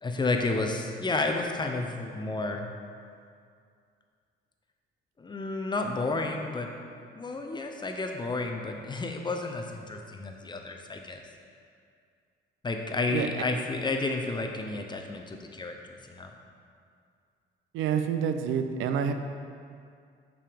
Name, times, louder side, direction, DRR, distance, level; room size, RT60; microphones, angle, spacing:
voice 1, 0.0-2.7 5.2-6.7 7.1-11.2 12.6-16.3, left 3 dB, 20° left, 3 dB, 0.6 m, -31 dB
voice 2, 17.7-19.1, right 7 dB, 85° right, 8 dB, 0.4 m, -27 dB
5.4 x 5.4 x 3.4 m, 2.3 s
cardioid pair, 90°, 20 cm